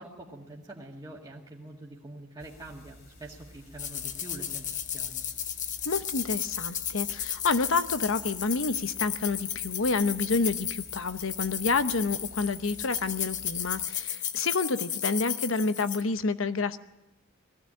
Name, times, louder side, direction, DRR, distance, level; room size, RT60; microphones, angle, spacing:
voice 1, 0.0-5.2, right 1 dB, 20° right, -4 dB, 2.1 m, -45 dB
sound 1, 2.4-13.9, left 1 dB, 55° left, 3.8 m, -52 dB
sound 2, 3.8-16.0, left 9 dB, 40° left, 1.0 m, -34 dB
voice 2, 5.8-16.8, left 3 dB, 70° left, 11 dB, 0.9 m, -29 dB
20.0 x 15.0 x 8.9 m, 0.94 s
head